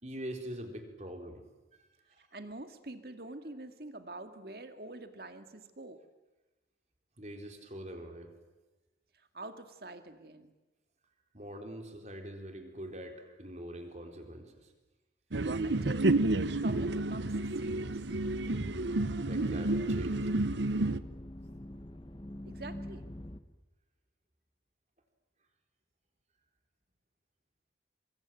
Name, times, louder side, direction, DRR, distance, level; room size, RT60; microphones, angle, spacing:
voice 1, 0.0-1.4 2.1-2.2 7.2-8.3 11.3-14.7 18.4-18.8 19.2-20.3, equal, 40° right, 4 dB, 4.2 m, -44 dB
voice 2, 2.2-6.0 9.3-10.5 15.6-16.2 16.5-18.0 22.4-23.1, right 2 dB, 60° right, 8 dB, 2.0 m, -45 dB
sound 1, 15.3-21.0, right 2 dB, 90° right, 1.0 m, -30 dB
sound 2, 18.2-23.4, left 1 dB, 25° left, 1.2 m, -45 dB
25.0 x 24.5 x 9.2 m, 1.1 s
head